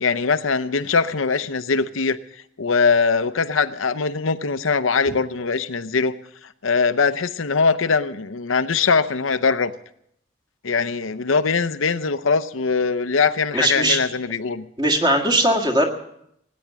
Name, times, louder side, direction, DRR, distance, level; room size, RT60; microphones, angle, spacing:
voice 1, 0.0-2.2 2.6-6.1 6.6-9.7 10.6-14.7, left 5 dB, 85° left, 13 dB, 0.8 m, -21 dB
voice 2, 13.5-14.0 14.8-15.9, right 1 dB, 20° right, 2 dB, 1.9 m, -19 dB
18.5 x 9.5 x 7.4 m, 0.75 s
head